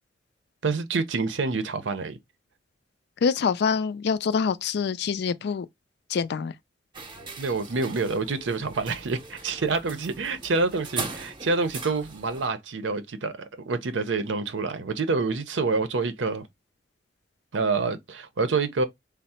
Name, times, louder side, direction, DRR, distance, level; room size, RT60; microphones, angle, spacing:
voice 1, 0.6-2.2 7.4-16.5 17.5-18.9, right 4 dB, 85° right, 0.6 m, -27 dB
voice 2, 3.2-5.7 6.1-6.5, left 6 dB, 60° left, 0.4 m, -25 dB
sound 1, 6.9-12.5, right 4 dB, 25° right, 0.7 m, -39 dB
3.5 x 2.0 x 4.1 m
head